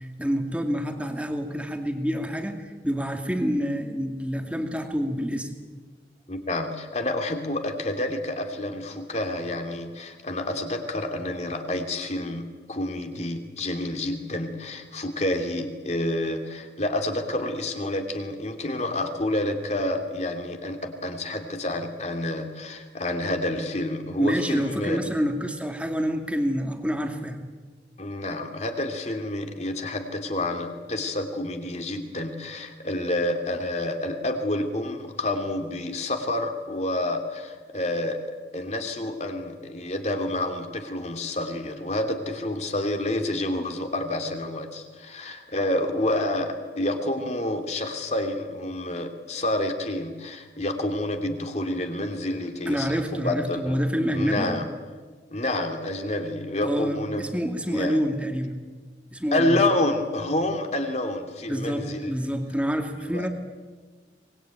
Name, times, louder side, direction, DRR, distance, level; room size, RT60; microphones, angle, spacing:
voice 1, 0.0-5.5 24.2-27.4 52.7-54.5 56.6-58.6 59.1-59.6 61.5-63.3, equal, 5° right, 4 dB, 2.4 m, -27 dB
voice 2, 6.3-12.4 12.7-25.0 28.0-38.2 38.5-53.8 54.1-54.7 55.3-57.3 57.7-58.0 59.3-62.1 63.1-63.3, left 1 dB, 40° left, 5 dB, 2.8 m, -28 dB
25.0 x 21.0 x 9.2 m, 1.4 s
head